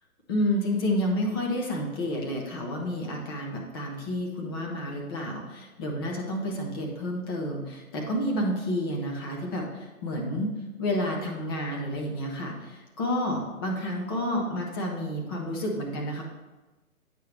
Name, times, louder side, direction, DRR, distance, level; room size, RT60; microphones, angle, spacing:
voice 1, 0.3-10.5 10.8-16.2, left 1 dB, 15° left, 0 dB, 0.7 m, -30 dB
8.4 x 5.6 x 3.3 m, 1.2 s
figure-of-eight pair, 140°, 43 cm